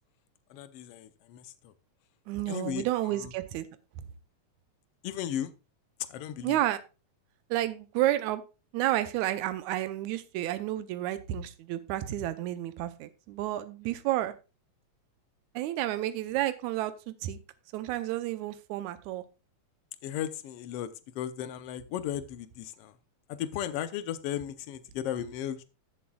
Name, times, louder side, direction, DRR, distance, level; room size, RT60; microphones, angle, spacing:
voice 1, 0.5-1.7 2.5-2.8 5.0-5.5 6.1-6.6 20.0-20.9 21.1-22.9 23.3-25.6, left 10 dB, 70° left, 1.6 m, -35 dB
voice 2, 2.3-3.7 6.4-6.8 7.5-8.4 8.7-14.3 15.6-17.4 17.7-19.2, right 14 dB, 85° right, 2.1 m, -31 dB
15.0 x 7.7 x 2.3 m
omnidirectional pair, 3.3 m